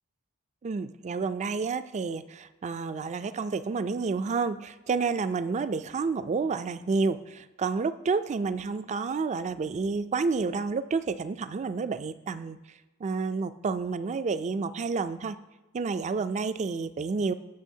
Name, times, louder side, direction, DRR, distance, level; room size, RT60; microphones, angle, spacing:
voice 1, 0.6-12.6 13.0-15.4 15.7-17.3, right 4 dB, 30° right, 13 dB, 0.3 m, -30 dB
16.0 x 6.5 x 2.7 m, 1.2 s
head